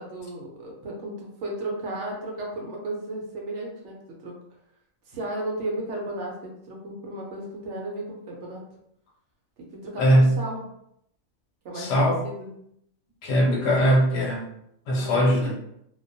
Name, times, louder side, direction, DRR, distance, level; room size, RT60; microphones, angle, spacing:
voice 1, 0.0-4.0 4.2-4.3 5.1-8.6 9.8-10.6 11.6-12.6 15.0-15.6, right 1 dB, 65° right, -1 dB, 0.8 m, -34 dB
voice 2, 10.0-10.3 11.7-12.2 13.2-14.4 14.9-15.5, equal, 60° left, -3 dB, 0.9 m, -20 dB
2.3 x 2.2 x 2.5 m, 0.75 s
omnidirectional pair, 1.4 m